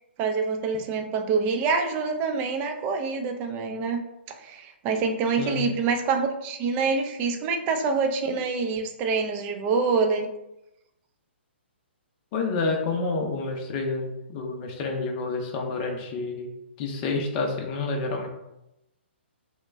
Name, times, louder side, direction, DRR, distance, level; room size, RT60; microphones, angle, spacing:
voice 1, 0.2-4.0 4.3-10.3, right 4 dB, 25° right, 5 dB, 0.4 m, -26 dB
voice 2, 12.3-16.5 16.8-18.3, left 3 dB, 35° left, 1 dB, 0.5 m, -29 dB
2.9 x 2.1 x 3.4 m, 0.88 s
figure-of-eight pair, 130°, 6 cm